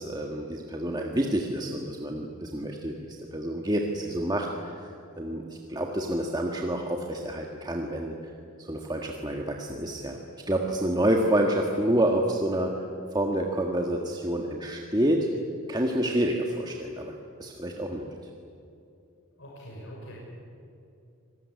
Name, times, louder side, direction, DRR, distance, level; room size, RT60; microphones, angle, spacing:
voice 1, 0.0-3.0 3.3-4.7 5.2-8.1 8.6-10.2 10.5-12.7 13.1-15.3 15.7-17.1 17.4-18.1, right 1 dB, 20° right, 1 dB, 1.6 m, -28 dB
voice 2, 19.4-20.2, equal, 60° left, -4 dB, 6.5 m, -43 dB
26.0 x 20.0 x 9.6 m, 2.7 s
head